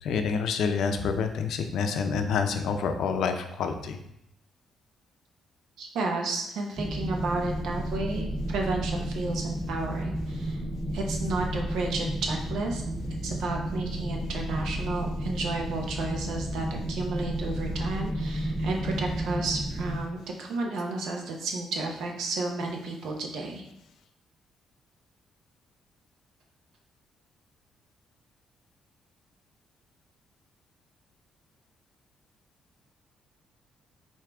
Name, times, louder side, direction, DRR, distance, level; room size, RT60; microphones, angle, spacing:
voice 1, 0.0-4.0, left 5 dB, 75° left, 6 dB, 0.5 m, -28 dB
voice 2, 5.8-10.6 10.9-12.8 13.2-23.7, right 3 dB, 80° right, 1 dB, 0.8 m, -32 dB
sound 1, 6.8-20.0, right 1 dB, 10° right, 0.7 m, -32 dB
4.8 x 2.7 x 3.4 m, 0.78 s
cardioid pair, 90°, 0 cm